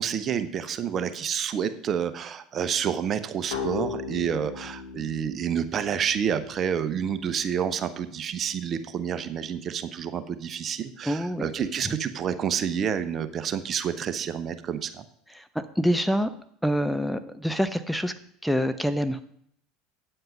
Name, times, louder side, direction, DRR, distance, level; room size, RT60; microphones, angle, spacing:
voice 1, 0.0-15.0, right 8 dB, 40° right, 12 dB, 0.9 m, -29 dB
sound 1, 3.5-7.0, left 6 dB, 70° left, 2.3 m, -37 dB
voice 2, 11.0-11.5 11.9-12.0 15.3-15.4 15.8-16.3 16.6-18.1 18.4-19.2, equal, ahead, 10 dB, 0.7 m, -26 dB
9.2 x 7.9 x 5.4 m, 0.67 s
figure-of-eight pair, 70°, 0 cm